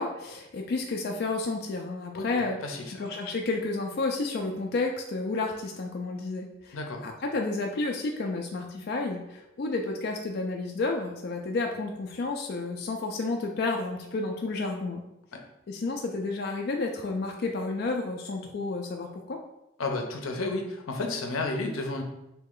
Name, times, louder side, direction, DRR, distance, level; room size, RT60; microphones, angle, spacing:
voice 1, 0.0-15.0 15.7-19.4, left 3 dB, 50° left, 2 dB, 0.3 m, -31 dB
voice 2, 2.6-3.0 6.7-7.0 15.3-15.4 19.8-22.0, left 2 dB, 85° left, 3 dB, 0.6 m, -32 dB
3.1 x 2.8 x 3.7 m, 0.89 s
head